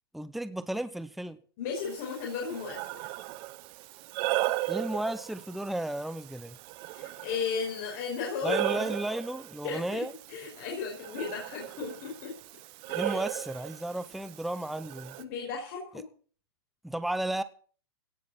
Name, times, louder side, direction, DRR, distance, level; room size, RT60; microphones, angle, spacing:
voice 1, 0.1-1.4 4.7-6.6 8.4-10.1 12.9-15.2 16.8-17.4, right 1 dB, ahead, 13 dB, 0.8 m, -33 dB
voice 2, 1.6-3.1 6.9-8.9 9.6-10.0 10.3-12.3 12.9-13.1 15.2-16.0, left 5 dB, 50° left, -1 dB, 5.4 m, -35 dB
Breathing, 1.8-15.2, right 18 dB, 40° right, 1.0 m, -37 dB
17.5 x 6.6 x 7.8 m, 0.43 s
hypercardioid pair, 130°, 13 cm